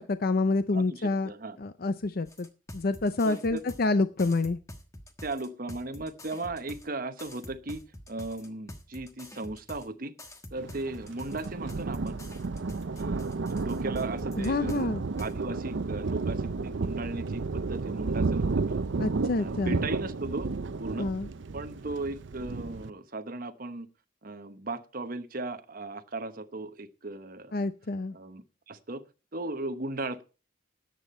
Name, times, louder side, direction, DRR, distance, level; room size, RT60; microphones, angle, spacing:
voice 1, 0.0-1.3 1.6-2.5 2.7-4.6 14.4-15.0 19.0-19.8 21.0-21.3 27.5-28.2, left 3 dB, 50° left, 12 dB, 0.5 m, -28 dB
voice 2, 0.7-1.6 3.3-3.6 5.2-10.1 10.5-12.2 13.0-14.9 15.2-18.8 19.4-20.5 20.8-21.1 21.5-23.9 24.2-27.7 28.1-29.0 29.3-30.2, right 2 dB, 45° right, 9 dB, 1.0 m, -37 dB
Otwo Drums track, 2.2-3.9 4.2-6.9 7.2-9.9 10.2-14.8 15.2-15.3, left 1 dB, 15° left, 1.3 m, -46 dB
Thunder, 10.6-22.9, right 3 dB, 70° right, 0.6 m, -32 dB
13.5 x 9.3 x 4.3 m, 0.34 s
head